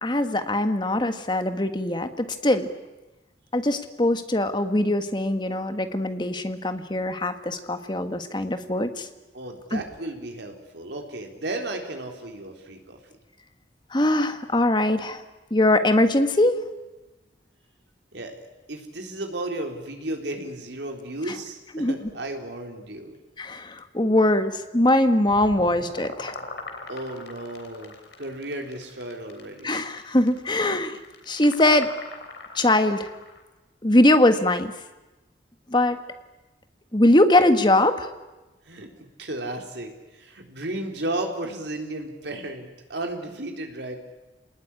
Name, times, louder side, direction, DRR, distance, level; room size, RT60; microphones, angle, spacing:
voice 1, 0.0-2.7 3.5-9.1 9.7-9.8 13.9-15.2 15.5-16.6 21.7-22.0 23.4-26.3 29.6-31.0 31.3-31.9 32.5-33.1 33.8-34.7 35.7-36.0 36.9-38.1, left 1 dB, 25° left, 8 dB, 1.5 m, -21 dB
voice 2, 9.3-13.0 18.1-18.4 18.7-23.2 26.9-29.8 38.6-38.9 39.2-44.0, right 1 dB, 85° right, 3 dB, 3.9 m, -34 dB
sound 1, 25.3-33.4, left 3 dB, 80° left, 3.7 m, -41 dB
28.0 x 19.5 x 10.0 m, 1.1 s
head